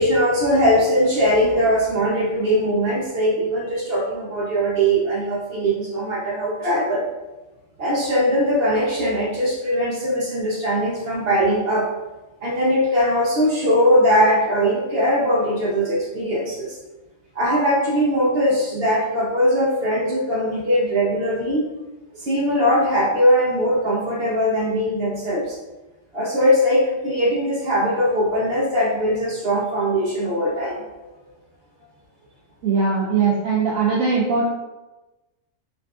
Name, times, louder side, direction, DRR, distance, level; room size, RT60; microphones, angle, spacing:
voice 1, 0.0-7.1 7.8-11.9 12.4-16.8 17.3-21.7 22.1-25.6 26.1-30.8, equal, 55° right, -3 dB, 0.8 m, -20 dB
voice 2, 32.6-34.5, right 5 dB, 85° right, -3 dB, 1.0 m, -20 dB
6.7 x 2.6 x 2.3 m, 1.1 s
omnidirectional pair, 1.4 m